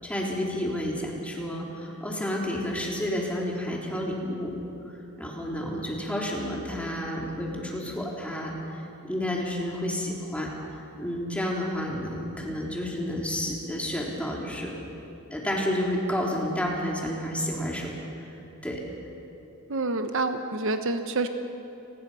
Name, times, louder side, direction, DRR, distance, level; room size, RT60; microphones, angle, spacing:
voice 1, 0.0-4.5 5.2-10.5 11.0-14.7 15.3-17.9 18.6-18.8, left 1 dB, 5° left, -2 dB, 3.5 m, -30 dB
voice 2, 19.7-21.3, right 3 dB, 60° right, 7 dB, 1.1 m, -27 dB
29.5 x 20.0 x 5.7 m, 2.9 s
head